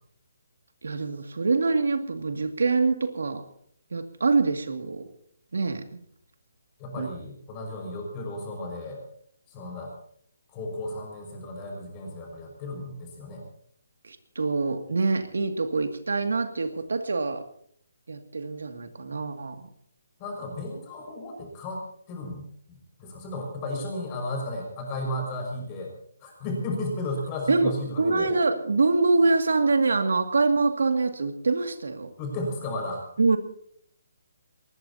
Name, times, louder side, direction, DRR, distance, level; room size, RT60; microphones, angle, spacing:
voice 1, 0.8-3.4 3.9-5.0 5.5-5.8 7.0-7.1 14.0-17.4 18.1-19.7 27.5-27.7 28.0-32.1 33.2-33.4, right 3 dB, 90° right, 6 dB, 2.3 m, -25 dB
voice 2, 6.8-9.0 9.5-10.0 10.5-13.4 20.2-21.8 22.1-25.9 26.2-28.3 32.2-33.0, left 1 dB, 15° left, 1 dB, 5.8 m, -34 dB
22.0 x 20.0 x 2.9 m, 0.64 s
hypercardioid pair, 175°, 0 cm